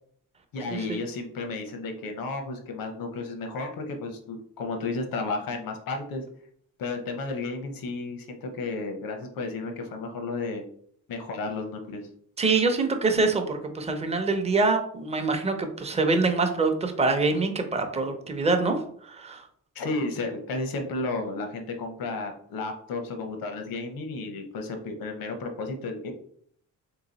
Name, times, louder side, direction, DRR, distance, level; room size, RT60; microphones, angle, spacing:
voice 1, 0.5-6.2 6.8-10.6 11.1-12.0 19.7-26.1, left 3 dB, 85° left, 5 dB, 0.9 m, -33 dB
voice 2, 12.4-19.4, right 3 dB, 20° right, 6 dB, 0.6 m, -25 dB
3.4 x 3.0 x 3.9 m, 0.62 s
cardioid pair, 120°, 34 cm